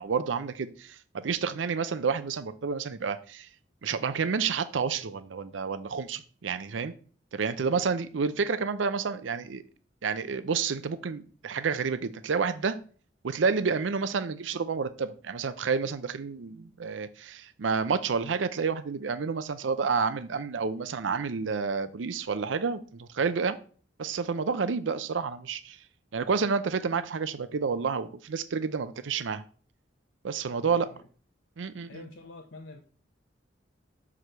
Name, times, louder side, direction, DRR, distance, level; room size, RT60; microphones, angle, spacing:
voice 1, 0.0-3.5 3.8-6.9 7.3-9.6 10.0-12.8 13.2-23.6 24.0-25.8 26.1-29.4 30.2-30.9 31.6-32.0, right 5 dB, 85° right, 0.5 m, -29 dB
voice 2, 30.6-31.1 31.8-32.8, left 2 dB, 90° left, 0.8 m, -47 dB
6.0 x 4.8 x 6.7 m
head